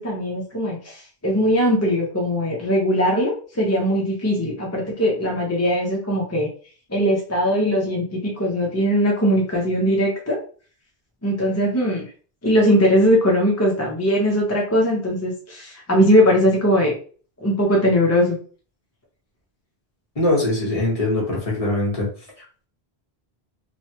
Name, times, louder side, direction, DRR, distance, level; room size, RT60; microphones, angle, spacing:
voice 1, 0.0-6.5 6.9-10.4 11.2-12.1 12.4-17.0 17.4-18.4, equal, 20° left, -2 dB, 0.5 m, -20 dB
voice 2, 20.2-22.1, left 2 dB, 35° left, -4 dB, 1.1 m, -22 dB
3.1 x 2.1 x 2.8 m, 0.41 s
omnidirectional pair, 1.1 m